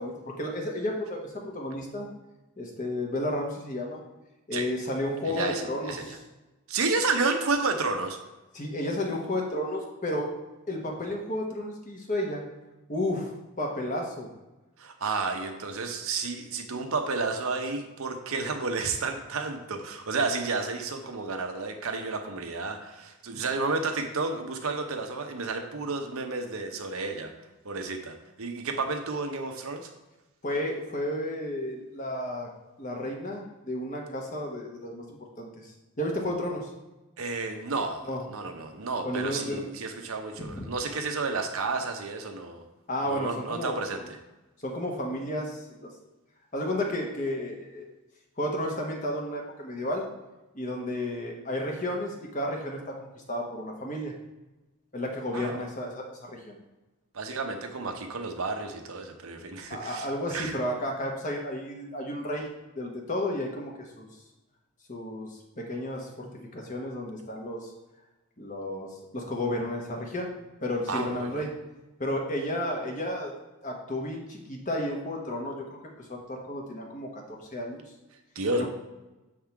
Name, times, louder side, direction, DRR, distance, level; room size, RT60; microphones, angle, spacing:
voice 1, 0.0-2.1 2.6-4.0 4.5-6.2 8.5-10.3 10.7-12.4 12.9-13.3 13.6-14.3 23.3-23.4 30.4-32.5 32.8-36.7 38.0-38.2 39.0-39.6 40.4-40.6 42.9-43.8 44.6-45.9 46.5-47.8 48.4-50.0 50.5-54.1 54.9-56.6 59.7-62.5 62.8-64.1 64.9-67.7 68.4-70.3 70.6-71.5 72.0-73.3 73.6-77.8 78.5-78.7, left 1 dB, 35° left, 0 dB, 1.1 m, -32 dB
voice 2, 5.3-6.2 6.7-8.2 14.8-27.3 27.6-29.9 37.2-38.0 38.3-42.6 43.0-44.0 55.3-55.6 57.1-60.5 70.9-71.4 78.4-78.6, right 3 dB, 70° right, 5 dB, 0.7 m, -31 dB
7.1 x 3.7 x 4.5 m, 1.1 s
head